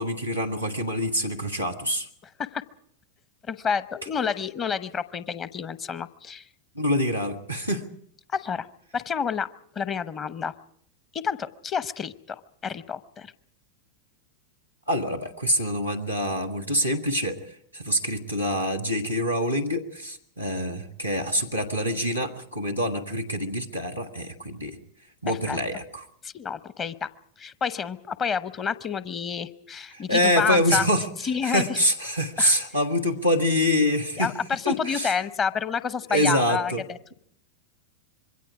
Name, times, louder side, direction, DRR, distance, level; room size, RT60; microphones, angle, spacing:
voice 1, 0.0-2.1 6.7-7.8 14.9-24.8 25.2-26.1 29.9-31.1 31.4-34.3 34.6-35.1 36.1-36.8, equal, 90° left, 1 dB, 1.7 m, -25 dB
voice 2, 3.5-6.5 8.3-8.7 8.9-9.5 9.7-10.5 11.1-13.3 25.3-25.6 26.2-27.1 27.4-30.9 31.2-31.8 32.4-32.5 34.2-37.1, left 6 dB, 25° left, 15 dB, 0.8 m, -29 dB
26.0 x 22.5 x 4.9 m, 0.65 s
figure-of-eight pair, 90°, 0 cm